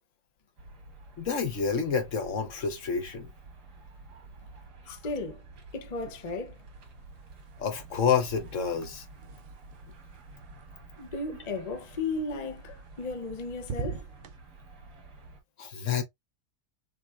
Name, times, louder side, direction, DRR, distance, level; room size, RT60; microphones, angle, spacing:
sound 1, 0.6-15.4, right 3 dB, 85° right, 2.1 m, -50 dB
voice 1, 1.2-3.3 4.9-5.0 7.6-9.0 15.6-16.0, left 6 dB, 55° left, 1.1 m, -29 dB
voice 2, 4.9-5.4 5.7-6.6 11.0-14.0, left 3 dB, 40° left, 0.6 m, -35 dB
sound 2, 6.0-6.7 6.9-11.1 12.7-13.3 13.6-14.4, right 6 dB, 65° right, 0.5 m, -43 dB
6.2 x 3.0 x 2.4 m
omnidirectional pair, 1.7 m